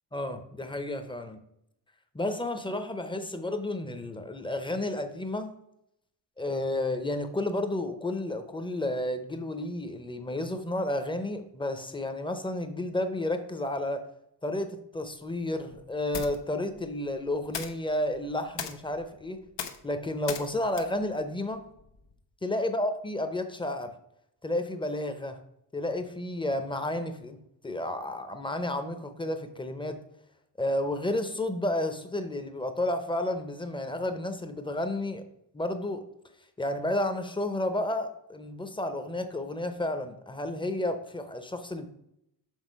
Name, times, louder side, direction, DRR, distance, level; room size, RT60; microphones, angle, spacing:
voice 1, 0.1-1.4 2.1-5.5 6.4-14.0 14.4-19.4 19.8-21.6 22.4-23.9 24.4-25.4 25.7-30.0 30.6-35.2 35.5-36.0 36.6-41.9, left 1 dB, 10° left, 8 dB, 0.7 m, -31 dB
sound 1, 15.8-22.2, left 7 dB, 80° left, 0.8 m, -42 dB
6.5 x 3.9 x 5.1 m, 0.77 s
wide cardioid pair, 120°, 42 cm